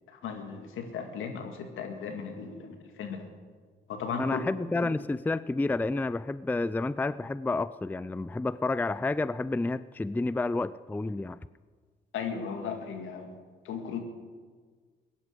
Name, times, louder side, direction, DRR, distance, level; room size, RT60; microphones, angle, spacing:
voice 1, 0.1-3.3 3.9-4.4 4.7-4.9 12.1-13.3 13.6-14.0, left 6 dB, 75° left, 5 dB, 1.9 m, -36 dB
voice 2, 4.2-11.4, left 2 dB, 10° left, 17 dB, 0.4 m, -30 dB
16.5 x 11.0 x 6.6 m, 1.5 s
supercardioid pair, 50°, 21 cm